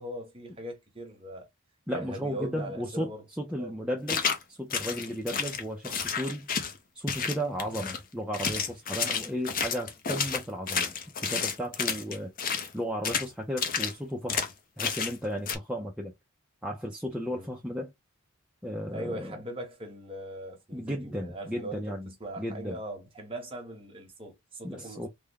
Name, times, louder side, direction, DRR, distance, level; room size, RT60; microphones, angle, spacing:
voice 1, 0.0-1.5 1.9-3.2 3.6-3.7 12.1-12.2 17.3-17.5 18.9-25.1, right 1 dB, 25° right, 1.1 m, -40 dB
voice 2, 1.9-3.1 3.4-6.5 6.9-10.9 11.2-12.3 12.7-14.5 14.8-16.1 16.6-17.9 18.6-19.4 20.7-22.1 22.4-22.8 24.6-25.1, equal, 5° right, 0.5 m, -34 dB
sound 1, 4.1-4.4 4.7-6.8 7.1-8.0 8.3-12.7 13.0-13.3 13.6-13.9 14.3-14.5 14.8-15.2 15.5-15.6, left 6 dB, 40° left, 0.6 m, -30 dB
3.4 x 2.2 x 3.4 m
head